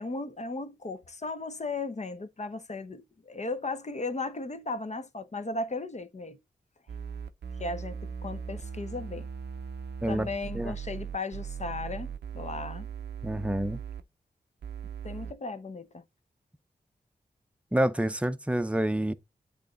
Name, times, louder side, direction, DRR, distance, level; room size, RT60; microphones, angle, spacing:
voice 1, 0.0-6.4 7.6-9.3 10.1-12.9 15.0-16.0, left 3 dB, 45° left, 0.9 m, -36 dB
sound 1, 6.9-14.0 14.6-15.3, right 7 dB, 90° right, 0.6 m, -39 dB
voice 2, 10.0-10.7 13.2-13.8 17.7-19.1, right 1 dB, 5° right, 0.6 m, -28 dB
8.3 x 3.3 x 3.9 m
cardioid pair, 45°, 17 cm